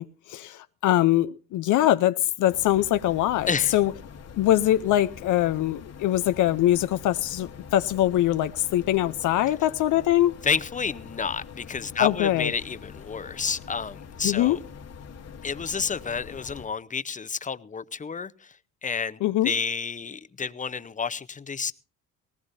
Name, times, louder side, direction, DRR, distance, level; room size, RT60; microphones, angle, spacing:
voice 1, 0.0-3.9 4.4-10.3 12.0-12.5 14.2-14.6 19.2-19.5, left 13 dB, 80° left, 0.6 m, -23 dB
sound 1, 2.5-16.7, left 6 dB, 55° left, 1.5 m, -44 dB
voice 2, 3.5-3.8 10.4-14.6 15.4-18.6 18.8-21.7, left 5 dB, 25° left, 0.8 m, -30 dB
19.0 x 18.0 x 2.6 m
cardioid pair, 90°, 30 cm